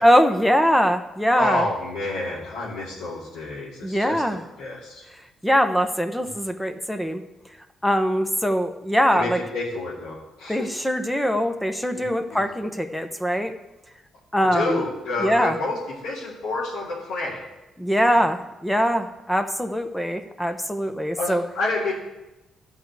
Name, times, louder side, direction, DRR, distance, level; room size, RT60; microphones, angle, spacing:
voice 1, 0.0-1.7 3.8-4.4 5.4-7.2 7.8-9.4 10.5-13.5 14.3-14.8 15.2-15.6 17.8-21.4, equal, 5° left, 8 dB, 0.9 m, -22 dB
voice 2, 1.4-4.2 4.6-5.0 9.1-10.7 12.3-12.4 14.5-15.8 16.0-17.4 21.2-21.9, left 2 dB, 90° left, -7 dB, 2.6 m, -29 dB
13.0 x 4.8 x 8.2 m, 0.99 s
cardioid pair, 90°, 0 cm